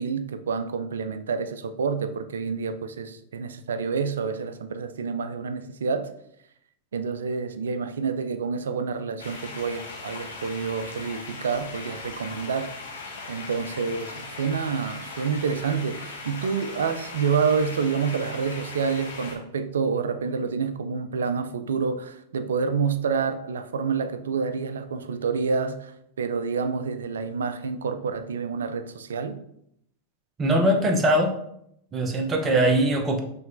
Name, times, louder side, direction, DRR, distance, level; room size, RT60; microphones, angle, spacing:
voice 1, 0.0-6.1 6.9-12.7 13.3-29.4, right 5 dB, 75° right, 0.4 m, -28 dB
sound 1, 9.2-19.3, left 3 dB, 75° left, 1.0 m, -39 dB
voice 2, 30.4-31.3 31.9-33.2, right 1 dB, 25° right, 0.8 m, -21 dB
5.7 x 3.1 x 2.6 m
figure-of-eight pair, 95°, 0 cm